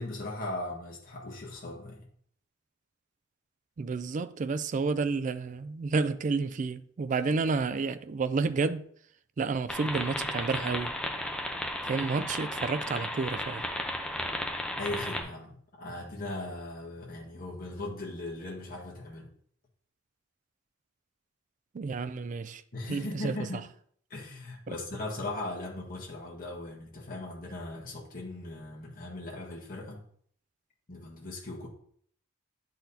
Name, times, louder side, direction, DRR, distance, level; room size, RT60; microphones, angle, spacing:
voice 1, 0.0-2.1 14.8-19.3 22.7-23.7 24.1-30.0 30.9-31.7, left 2 dB, 45° left, 1.5 m, -38 dB
voice 2, 3.8-8.9 9.4-11.0 11.8-13.7 21.7-22.6 22.9-23.5 24.7-24.8, right 4 dB, 40° right, 0.3 m, -30 dB
sound 1, 9.7-15.2, left 1 dB, 5° left, 0.6 m, -34 dB
10.0 x 4.1 x 2.7 m
head